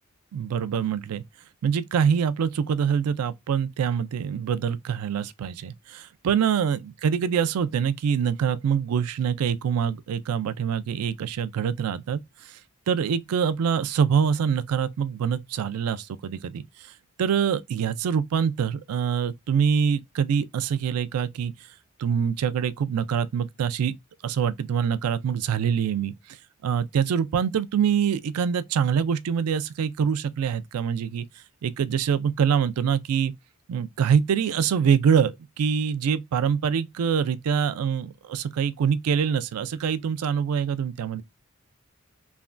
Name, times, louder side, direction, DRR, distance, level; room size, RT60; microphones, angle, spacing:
voice 1, 0.3-1.2 1.6-12.6 12.9-16.6 17.2-21.5 22.0-23.9 24.2-26.1 26.6-31.3 31.6-33.3 33.7-41.2, right 7 dB, 85° right, 0.3 m, -25 dB
3.3 x 2.2 x 2.4 m
head